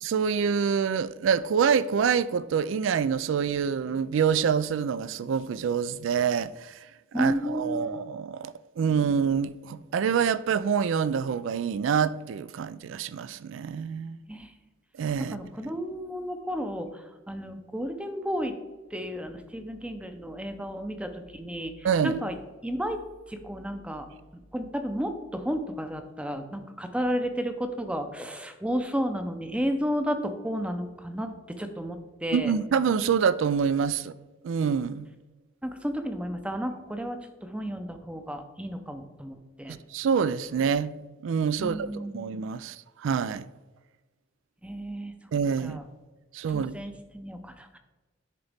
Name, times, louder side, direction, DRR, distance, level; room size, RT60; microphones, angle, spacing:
voice 1, 0.0-6.7 7.1-14.2 15.0-15.4 21.8-22.2 32.3-34.1 34.4-35.1 39.7-40.9 41.2-43.4 45.3-45.8 46.3-46.7, right 6 dB, 70° right, 0.3 m, -26 dB
voice 2, 7.1-7.9 14.3-14.5 15.3-18.5 18.9-22.3 22.6-23.0 23.3-24.1 24.5-32.5 35.6-39.7 41.6-42.4 44.6-45.1 45.6-45.8 46.5-47.8, equal, 5° right, 0.6 m, -32 dB
11.0 x 4.0 x 3.4 m
head